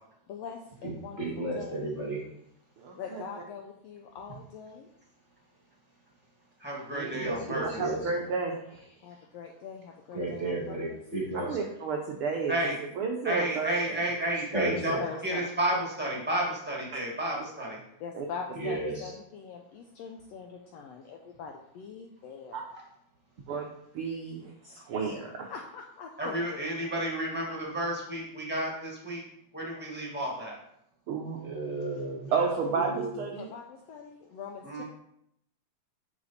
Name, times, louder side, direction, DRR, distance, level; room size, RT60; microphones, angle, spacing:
voice 1, 0.3-1.2 1.5-1.9 3.0-4.9 9.0-11.0 14.7-15.5 18.0-22.7 25.5-26.6 32.4-32.6 33.4-34.8, left 6 dB, 75° left, 2 dB, 1.5 m, -42 dB
voice 2, 0.8-2.2 7.1-8.0 10.1-11.6 14.5-15.0 18.5-19.1 31.4-33.2, right 2 dB, 30° right, -3 dB, 1.7 m, -33 dB
voice 3, 2.8-3.2 6.9-7.1 7.8-8.9 11.3-12.6 13.0-14.0 16.9-17.0 18.2-18.3 22.5-22.6 23.5-25.5 31.1-31.4 32.3-33.5, right 5 dB, 80° right, 1 dB, 1.2 m, -32 dB
voice 4, 6.6-7.8 12.5-12.8 13.2-17.8 26.2-29.2 29.5-30.6 34.6-34.8, right 1 dB, 5° right, -3 dB, 1.3 m, -31 dB
9.9 x 4.9 x 4.2 m, 0.75 s
omnidirectional pair, 3.6 m